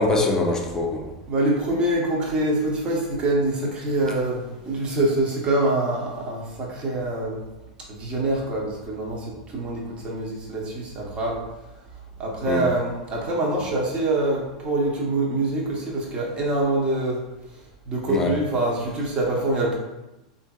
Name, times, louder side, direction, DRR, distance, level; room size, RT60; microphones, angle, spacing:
voice 1, 0.0-1.1 12.5-12.7 18.1-18.3, left 2 dB, 15° left, 1 dB, 0.5 m, -23 dB
voice 2, 1.3-7.4 7.9-11.4 12.2-17.2 17.9-19.8, right 2 dB, 30° right, -2 dB, 0.9 m, -25 dB
3.3 x 2.6 x 2.3 m, 1.0 s
hypercardioid pair, 110°, 4 cm